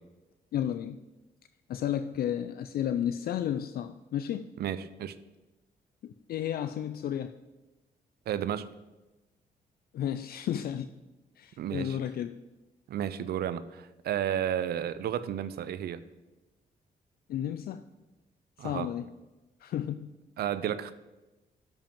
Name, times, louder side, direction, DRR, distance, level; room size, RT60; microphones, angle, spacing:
voice 1, 0.5-1.0 1.7-4.5 6.0-7.3 9.9-10.9 11.4-12.4 17.3-17.8 18.6-19.0 19.6-20.1, left 10 dB, 65° left, 11 dB, 0.4 m, -32 dB
voice 2, 4.6-5.1 8.3-8.7 11.6-12.0 12.9-16.0 18.6-18.9 20.4-20.9, right 10 dB, 70° right, 15 dB, 0.5 m, -32 dB
7.0 x 5.4 x 7.1 m, 1.1 s
cardioid pair, 75°, 17 cm